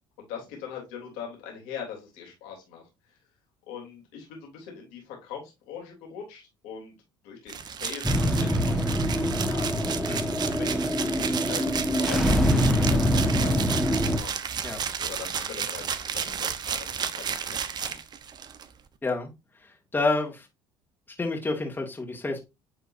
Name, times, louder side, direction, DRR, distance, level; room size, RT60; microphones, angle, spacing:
voice 1, 0.2-2.8 3.1-3.2 3.7-6.9 7.2-9.7 10.4-14.7 15.0-18.0, left 7 dB, 80° left, 3.0 m, -42 dB
sound 1, 7.5-18.6, right 7 dB, 45° right, 0.8 m, -33 dB
sound 2, 8.0-14.2, equal, ahead, 1.4 m, -24 dB
voice 2, 19.0-19.3 19.6-20.5 21.2-22.4, left 3 dB, 20° left, 2.0 m, -29 dB
9.6 x 3.9 x 2.6 m
supercardioid pair, 80°, 10 cm